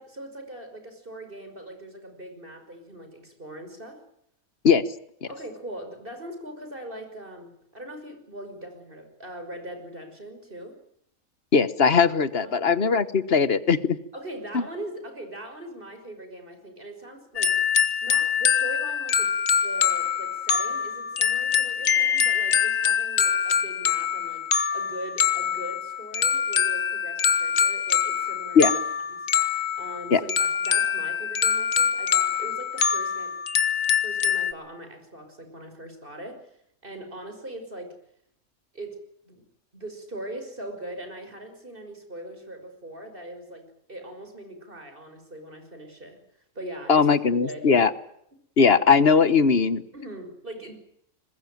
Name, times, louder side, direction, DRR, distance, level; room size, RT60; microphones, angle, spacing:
voice 1, 0.0-4.0 5.3-10.8 12.3-12.6 14.1-17.6 18.0-28.8 29.1-29.3 29.8-33.3 34.0-36.5 36.8-37.9 38.7-39.4 39.7-46.2 46.5-47.1 47.4-47.9 49.2-49.3 49.9-50.8, right 1 dB, 40° right, 7 dB, 6.0 m, -40 dB
voice 2, 11.5-14.0 14.5-14.6 28.5-28.7 30.1-30.2 46.9-47.9 48.6-49.8, left 5 dB, 45° left, 14 dB, 1.4 m, -19 dB
sound 1, 17.4-34.5, left 7 dB, 70° left, 1.6 m, -24 dB
23.0 x 21.0 x 9.2 m, 0.73 s
omnidirectional pair, 1.5 m